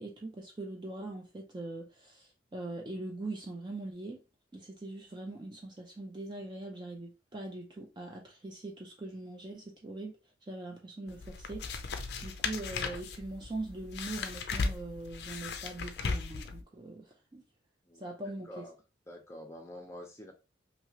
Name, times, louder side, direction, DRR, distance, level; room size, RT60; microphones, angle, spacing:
voice 1, 0.0-4.2 4.5-10.1 10.4-12.0 12.2-17.4 18.0-18.7, right 2 dB, 25° right, 0.4 m, -42 dB
sound 1, 11.1-16.6, left 4 dB, 55° left, 0.4 m, -37 dB
voice 2, 17.9-18.7 19.1-20.3, left 1 dB, 15° left, 0.7 m, -47 dB
2.9 x 2.8 x 2.8 m
head